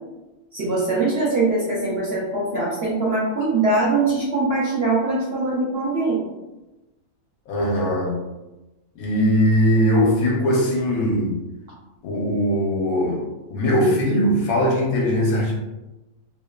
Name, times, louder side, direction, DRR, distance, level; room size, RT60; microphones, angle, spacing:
voice 1, 0.5-6.2, right 3 dB, 60° right, -6 dB, 0.7 m, -22 dB
voice 2, 7.5-8.2 9.0-11.3 12.0-13.2 13.5-15.5, equal, 80° left, -1 dB, 1.1 m, -20 dB
2.9 x 2.1 x 2.3 m, 1.0 s
omnidirectional pair, 1.5 m